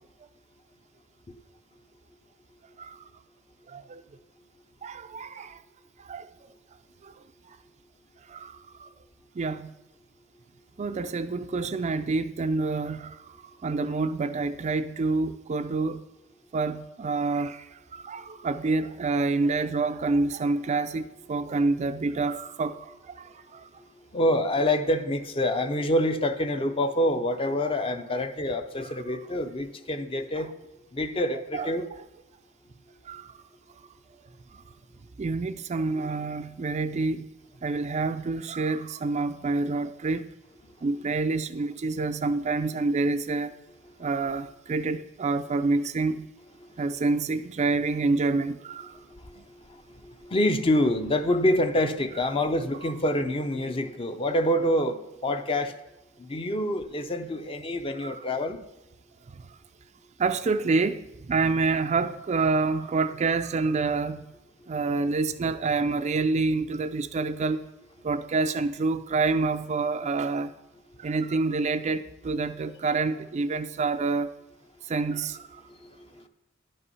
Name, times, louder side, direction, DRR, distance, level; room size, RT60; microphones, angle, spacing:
voice 1, 2.8-3.1 3.7-4.0 4.8-5.6 6.0-6.3 7.0-7.6 8.3-8.9 9.3-9.7 10.8-16.0 16.5-23.7 27.6-27.7 28.2-28.3 30.4-30.5 31.5-31.7 33.1-33.3 34.5-34.6 35.2-37.2 37.6-40.3 40.8-43.5 44.0-46.2 46.8-49.0 58.0-58.2 59.3-59.6 60.2-64.2 64.7-67.7 68.0-70.5 71.0-74.3 74.8-75.6, right 3 dB, 35° right, 0.4 m, -28 dB
voice 2, 24.1-30.5 30.9-31.9 46.7-46.8 48.9-55.7 56.2-58.6 75.8-76.3, left 1 dB, 25° left, 0.6 m, -27 dB
11.0 x 5.5 x 5.5 m
head